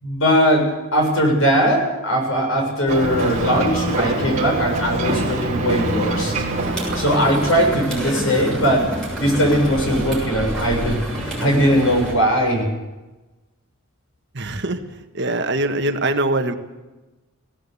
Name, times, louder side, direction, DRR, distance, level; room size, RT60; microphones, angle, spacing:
voice 1, 0.0-6.3 7.0-8.9 9.2-12.7, equal, 70° left, 2 dB, 7.3 m, -19 dB
Ocean, 2.9-7.8, right 2 dB, 30° right, 4.1 m, -24 dB
sound 1, 6.5-12.1, right 1 dB, 5° left, 6.9 m, -28 dB
voice 2, 14.3-14.8 15.1-16.5, right 2 dB, 50° right, 6 dB, 1.6 m, -22 dB
18.5 x 17.5 x 8.5 m, 1.1 s
head